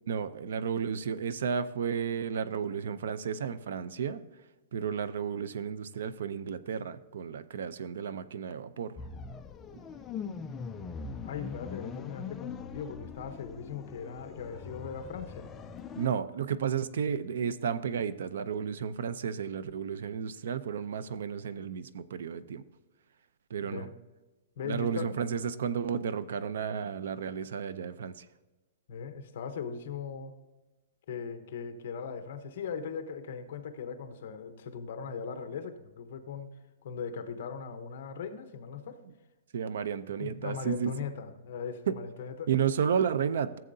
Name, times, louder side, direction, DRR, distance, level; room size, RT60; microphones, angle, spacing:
voice 1, 0.1-4.2 4.7-8.9 15.9-22.6 23.5-23.9 24.6-28.3 39.5-41.0 41.9-42.0 42.5-43.6, right 7 dB, 65° right, 15 dB, 0.5 m, -32 dB
sound 1, 9.0-16.1, left 6 dB, 10° left, 0.3 m, -42 dB
voice 2, 11.2-15.5 23.6-23.9 24.6-25.1 28.9-30.3 31.1-36.5 36.8-39.0 40.2-42.5, left 6 dB, 45° left, 8 dB, 0.9 m, -39 dB
14.5 x 7.6 x 2.7 m, 1.1 s
hypercardioid pair, 180°, 0 cm